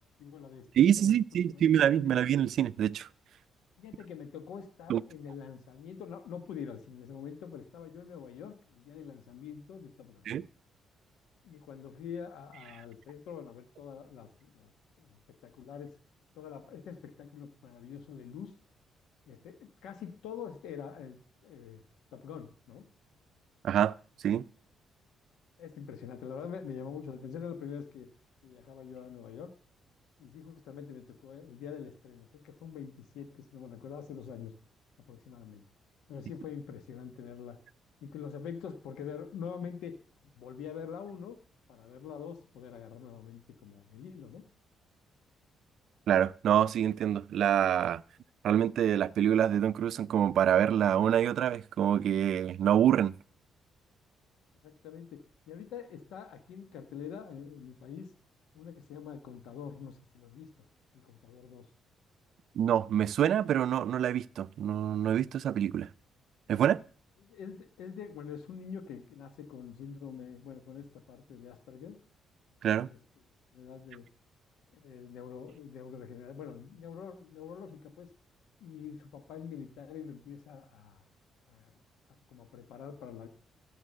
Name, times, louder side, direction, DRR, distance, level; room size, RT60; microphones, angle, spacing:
voice 1, 0.2-1.1 1.5-1.7 2.0-2.1 3.8-10.2 11.4-14.7 15.0-15.9 16.3-18.5 19.3-21.8 22.1-22.9 25.6-28.1 28.4-29.5 30.2-34.5 35.0-35.6 36.1-37.6 38.0-40.0 40.3-41.4 41.7-44.4 54.6-55.2 55.5-58.1 58.5-60.7 60.9-61.7 67.2-72.0 72.8-73.0 73.5-74.0 74.7-78.1 78.6-81.0 81.5-81.8 82.3-83.3, left 7 dB, 85° left, 1.3 m, -45 dB
voice 2, 0.8-3.1 4.9-5.0 10.3-10.5 23.6-23.9 24.2-24.4 46.1-48.0 48.4-53.1 62.6-65.9 66.5-66.8 72.6-72.9, right 10 dB, 70° right, 0.5 m, -26 dB
15.0 x 7.2 x 6.6 m
cardioid pair, 90°, 0 cm